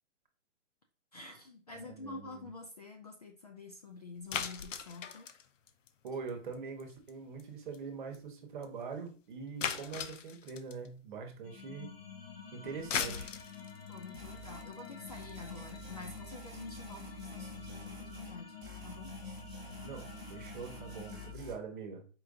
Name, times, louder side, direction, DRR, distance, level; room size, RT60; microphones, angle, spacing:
voice 1, 1.1-5.3 13.9-18.5 18.8-19.1, left 3 dB, 35° left, 3 dB, 0.4 m, -48 dB
voice 2, 1.7-2.5 6.0-11.9 12.5-13.3 19.8-22.1, right 5 dB, 40° right, 5 dB, 1.0 m, -43 dB
sound 1, 4.3-6.5 6.8-7.1 7.4-7.5 7.7-7.8 8.1-8.2 8.6-8.7 9.6-10.9 12.7-17.0, left 7 dB, 85° left, 0.7 m, -38 dB
sound 2, 11.4-21.3, left 6 dB, 50° left, 0.8 m, -48 dB
sound 3, 14.1-14.7 15.1-18.4 18.6-21.5, right 4 dB, 10° right, 0.8 m, -50 dB
4.5 x 2.5 x 3.6 m, 0.37 s
hypercardioid pair, 160°, 37 cm